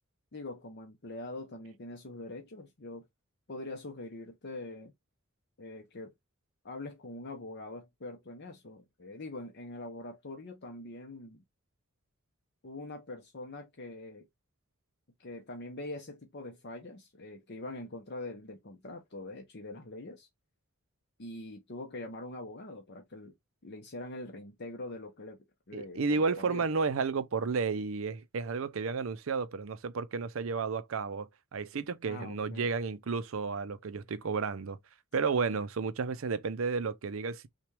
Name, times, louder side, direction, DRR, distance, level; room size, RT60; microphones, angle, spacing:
voice 1, 0.3-3.0 3.5-4.9 5.6-6.1 6.6-11.4 12.6-14.3 15.2-20.3 21.2-23.3 23.6-25.4 25.7-26.7 32.0-32.7, left 2 dB, 50° left, 0.8 m, -43 dB
voice 2, 25.7-34.8 35.1-37.5, right 4 dB, 70° right, 0.5 m, -32 dB
5.9 x 2.3 x 3.2 m
head